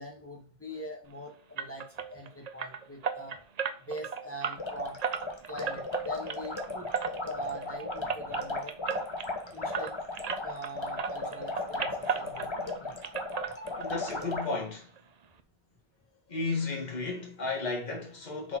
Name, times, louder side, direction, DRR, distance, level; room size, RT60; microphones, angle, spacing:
voice 1, 0.0-3.4 3.8-5.0 5.5-6.9 7.2-8.8 9.5-10.0 10.4-12.5 12.8-13.0 13.5-14.1, equal, 15° left, 1.8 m, -42 dB
sound 1, 1.6-10.7 11.0-12.8 13.0-14.1 14.4-14.5 15.0-15.1 15.4-15.5, right 6 dB, 45° right, 0.6 m, -36 dB
sound 2, 4.5-14.5, left 2 dB, 30° left, 1.1 m, -36 dB
voice 2, 12.3-13.0 13.8-14.9 16.3-18.6, left 3 dB, 45° left, 1.9 m, -34 dB
6.9 x 4.3 x 4.6 m
omnidirectional pair, 1.0 m